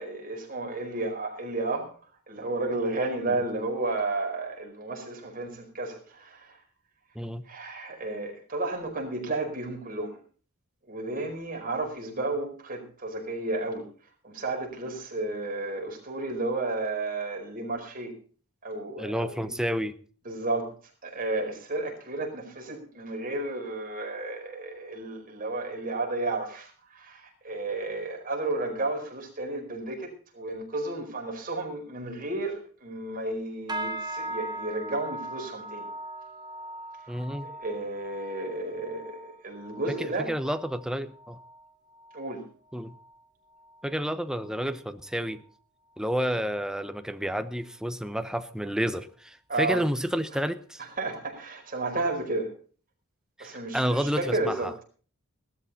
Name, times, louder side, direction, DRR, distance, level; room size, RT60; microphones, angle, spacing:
voice 1, 0.0-1.9 2.3-6.6 7.4-10.2 10.9-13.8 14.2-18.1 18.6-19.3 20.2-20.7 21.0-35.9 37.1-37.2 37.6-40.3 42.1-42.4 49.5-49.8 51.0-52.5 53.4-54.7, right 2 dB, 40° right, 1 dB, 4.7 m, -32 dB
voice 2, 19.0-20.0 37.1-37.5 39.9-41.4 42.7-42.9 43.8-45.4 46.0-50.8 53.4-54.7, equal, 5° right, 10 dB, 0.8 m, -30 dB
sound 1, 33.7-43.2 43.5-44.0 44.4-44.7 45.3-45.4, right 1 dB, 20° right, 1.6 m, -40 dB
17.5 x 12.5 x 4.2 m, 0.41 s
head